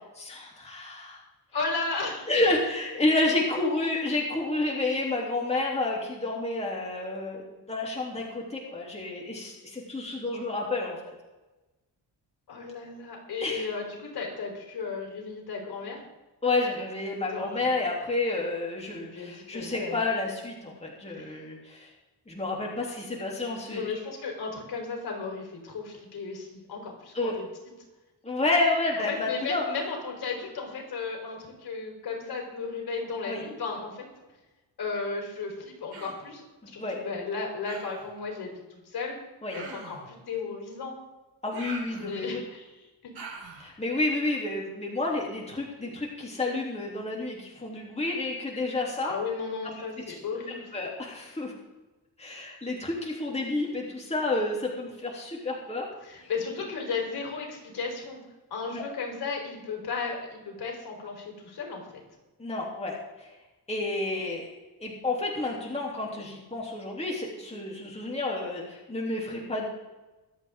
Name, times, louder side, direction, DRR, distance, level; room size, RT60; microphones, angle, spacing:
voice 1, 0.1-1.2 2.3-11.1 13.4-13.7 16.4-21.9 22.3-23.8 27.1-27.3 28.2-29.6 33.3-33.4 36.6-37.0 39.4-39.6 41.4-42.4 43.6-49.1 50.1-50.2 50.7-51.5 52.2-55.9 56.2-56.3 58.7-58.8 62.4-63.3 63.7-64.5 64.8-69.6, left 2 dB, 15° left, -3 dB, 3.3 m, -30 dB
voice 2, 1.5-2.3 12.5-16.0 17.1-17.7 19.1-20.0 21.2-21.4 23.7-27.5 29.0-34.0 34.8-39.2 39.5-41.0 41.9-42.9 49.0-50.7 56.0-58.2 58.5-62.0, left 4 dB, 65° left, 0 dB, 4.4 m, -35 dB
Human voice, 35.9-36.3 37.7-38.1 39.5-40.1 41.5-42.4 43.2-43.7, right 4 dB, 65° right, 5.5 m, -43 dB
23.5 x 8.4 x 3.8 m, 1.1 s
cardioid pair, 110°, 40 cm